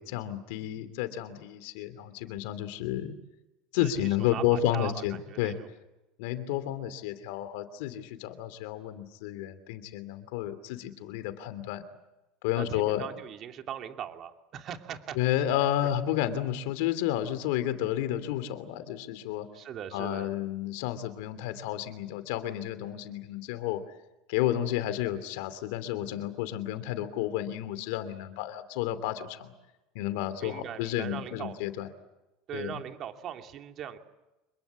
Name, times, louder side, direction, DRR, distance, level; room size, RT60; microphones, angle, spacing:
voice 1, 0.0-3.1 3.7-5.5 6.2-11.8 12.4-13.1 15.1-19.5 19.9-23.8 24.3-29.5 29.9-31.9 32.5-32.8, left 12 dB, 75° left, 12 dB, 2.9 m, -31 dB
voice 2, 3.8-5.7 12.6-15.2 19.5-20.3 30.4-31.6 32.5-34.0, right 9 dB, 45° right, 5 dB, 2.6 m, -40 dB
26.5 x 22.5 x 8.6 m, 1.0 s
supercardioid pair, 115°, 0 cm